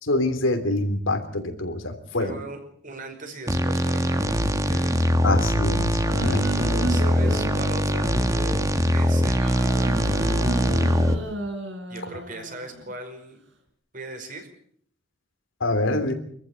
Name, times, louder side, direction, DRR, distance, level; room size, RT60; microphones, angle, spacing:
voice 1, 0.0-2.4 5.2-6.4 15.6-16.1, left 2 dB, 85° left, 7 dB, 3.3 m, -25 dB
voice 2, 2.2-5.1 6.2-10.3 11.9-13.4 13.9-14.5, right 2 dB, 45° right, 5 dB, 5.1 m, -39 dB
sound 1, 3.5-11.1, equal, 15° right, 1.7 m, -22 dB
sound 2, 6.0-8.7 9.4-12.9, right 1 dB, 75° right, 4.5 m, -33 dB
25.0 x 14.5 x 8.4 m, 0.63 s
head